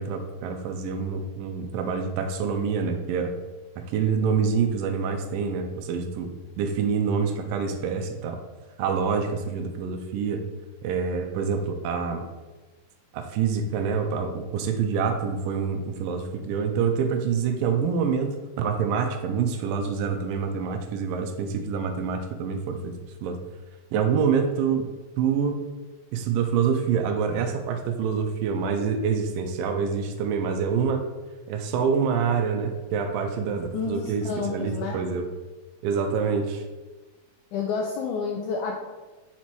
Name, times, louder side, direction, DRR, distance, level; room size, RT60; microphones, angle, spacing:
voice 1, 0.0-3.3 3.8-8.4 8.8-10.5 10.8-12.2 13.1-22.9 23.2-23.4 23.9-24.9 25.2-25.6 26.1-31.1 31.5-35.3 35.8-36.6, right 6 dB, 80° right, 6 dB, 2.2 m, -26 dB
voice 2, 33.7-35.0 37.5-38.7, left 5 dB, 90° left, 1 dB, 1.7 m, -29 dB
6.0 x 4.3 x 4.5 m, 1.2 s
omnidirectional pair, 4.1 m